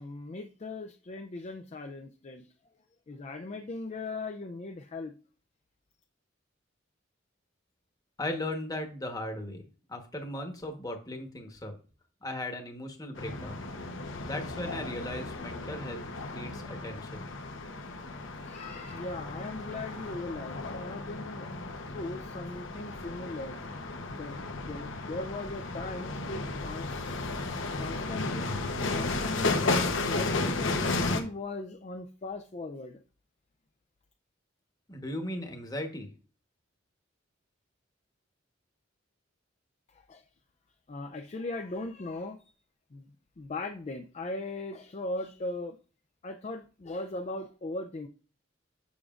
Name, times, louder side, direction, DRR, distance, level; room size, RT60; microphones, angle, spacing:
voice 1, 0.0-2.5 3.1-5.1 18.4-21.5 21.9-23.6 24.1-27.2 27.8-28.5 28.9-33.0 39.9-40.2 40.9-42.4 42.9-43.1 43.4-45.8 46.2-48.1, left 2 dB, 35° left, 5 dB, 0.4 m, -39 dB
voice 2, 8.2-9.6 9.9-11.8 12.2-13.7 14.2-17.3 34.9-36.1, left 1 dB, 20° left, 4 dB, 1.1 m, -37 dB
sound 1, 13.2-31.2, left 3 dB, 80° left, 0.9 m, -34 dB
7.0 x 6.3 x 2.4 m, 0.37 s
head